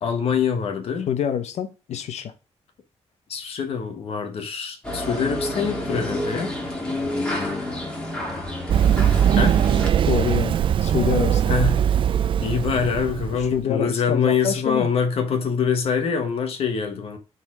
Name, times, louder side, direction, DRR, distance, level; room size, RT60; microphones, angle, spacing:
voice 1, 0.0-1.1 3.3-6.5 9.4-9.6 11.5-11.7 12.4-17.2, left 6 dB, 60° left, 1.3 m, -24 dB
voice 2, 1.1-2.3 10.1-11.4 13.3-14.9, left 8 dB, 80° left, 1.1 m, -26 dB
sound 1, 4.8-9.9, left 1 dB, 10° left, 2.0 m, -29 dB
Run, 8.7-13.5, right 9 dB, 50° right, 0.4 m, -20 dB
6.9 x 4.2 x 4.9 m
wide cardioid pair, 175°, 11 cm